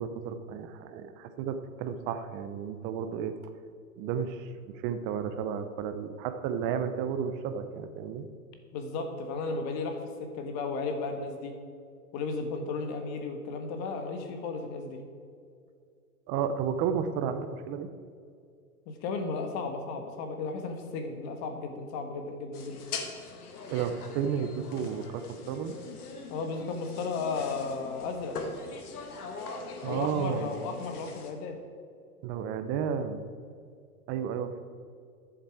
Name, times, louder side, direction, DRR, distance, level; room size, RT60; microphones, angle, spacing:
voice 1, 0.0-3.3 4.0-8.3 16.3-17.9 23.7-25.8 29.8-30.5 32.2-33.2 34.1-34.6, right 7 dB, 25° right, 9 dB, 0.7 m, -32 dB
voice 2, 8.7-11.5 12.1-15.0 18.9-22.8 26.3-28.4 29.8-31.6, left 4 dB, 35° left, 5 dB, 1.5 m, -34 dB
sound 1, 22.5-31.3, left 4 dB, 80° left, 1.6 m, -42 dB
12.0 x 7.5 x 4.9 m, 2.3 s
hypercardioid pair, 130°, 45 cm